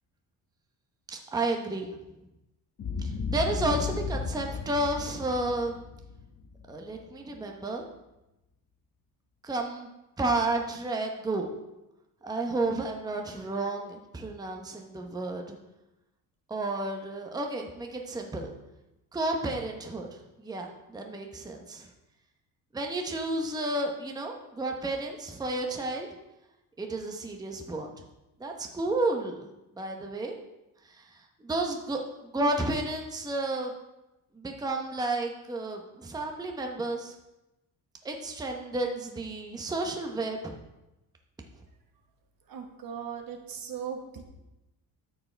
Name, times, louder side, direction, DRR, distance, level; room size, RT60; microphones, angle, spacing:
voice 1, 1.1-2.0 3.0-5.8 6.7-7.8 9.4-9.9 10.2-11.6 12.2-15.6 16.5-18.5 19.1-21.9 22.7-26.1 26.8-27.9 28.4-29.5 29.8-30.4 30.8-32.0 32.3-33.7 34.3-37.1 38.0-40.5, right 2 dB, 10° right, 2 dB, 0.8 m, -32 dB
Boom, 2.8-7.1, left 5 dB, 35° left, 0.8 m, -34 dB
voice 2, 42.5-44.2, right 7 dB, 55° right, 4 dB, 1.3 m, -38 dB
13.0 x 4.8 x 3.3 m, 0.96 s
cardioid pair, 115°, 41 cm